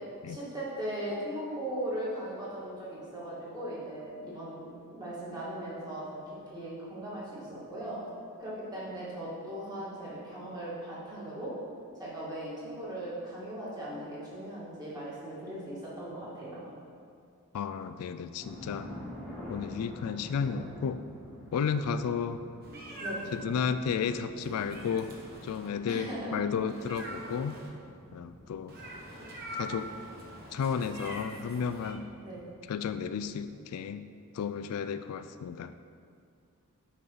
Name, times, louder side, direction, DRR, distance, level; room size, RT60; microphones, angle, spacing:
voice 1, 0.2-8.0 8.4-11.5 11.9-16.7 23.0-23.3 25.9-26.4 32.2-32.4, right 1 dB, 20° right, -8 dB, 2.0 m, -38 dB
voice 2, 17.5-18.9 19.5-21.0 21.5-22.4 23.3-25.1 25.4-27.6 28.1-28.8 29.5-29.9 30.5-32.1 32.7-34.1 34.3-35.7, left 6 dB, 80° left, 11 dB, 0.3 m, -33 dB
sound 1, 18.4-33.5, left 1 dB, ahead, 1.5 m, -48 dB
Meow, 22.6-23.4 24.4-25.7 26.7-27.7 28.7-31.9, right 1 dB, 45° right, 1.0 m, -43 dB
8.4 x 5.4 x 4.0 m, 2.3 s
head